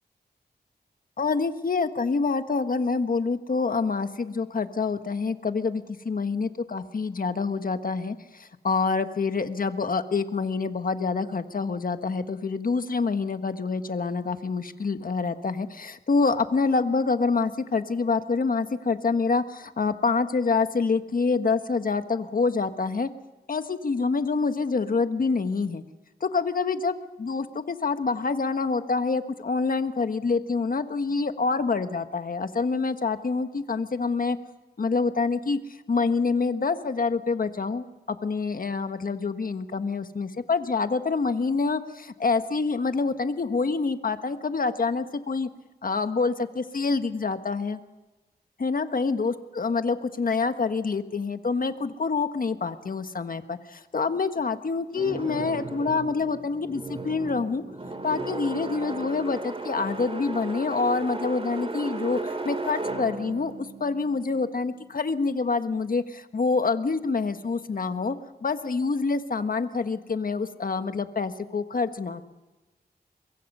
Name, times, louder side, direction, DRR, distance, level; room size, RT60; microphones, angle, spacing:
voice 1, 1.2-23.1 23.5-25.8 26.2-34.4 34.8-35.6 35.9-45.5 45.8-47.8 48.6-57.6 58.0-68.2 68.4-72.2, left 4 dB, 55° left, 9 dB, 1.4 m, -26 dB
sound 1, 54.9-64.9, right 2 dB, 35° right, 2.8 m, -35 dB
24.0 x 22.5 x 5.5 m, 1.1 s
wide cardioid pair, 75°, 17 cm